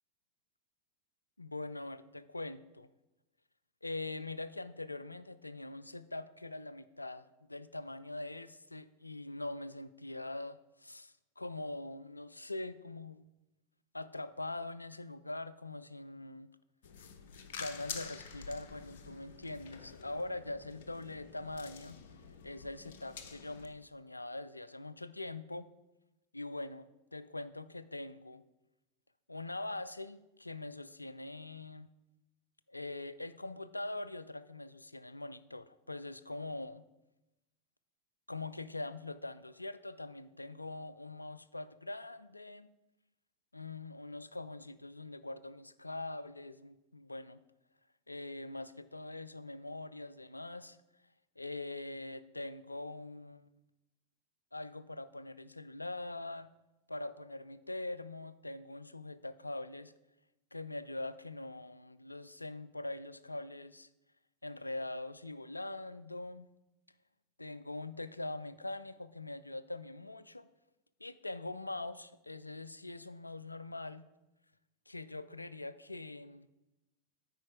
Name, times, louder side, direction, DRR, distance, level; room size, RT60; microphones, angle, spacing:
voice 1, 1.4-2.9 3.8-13.2 13.9-16.5 17.6-22.0 22.4-25.7 26.3-28.4 29.3-31.9 32.7-36.8 38.3-42.7 43.5-47.4 48.1-50.8 51.4-53.5 54.5-56.5 56.9-59.9 60.5-63.9 64.4-66.5 67.4-70.5 71.0-74.0 74.9-76.5, left 2 dB, 85° left, 14 dB, 0.3 m, -43 dB
sound 1, 16.8-23.7, left 6 dB, 55° left, 0.7 m, -48 dB
8.6 x 4.9 x 4.7 m, 0.97 s
figure-of-eight pair, 90°, 0 cm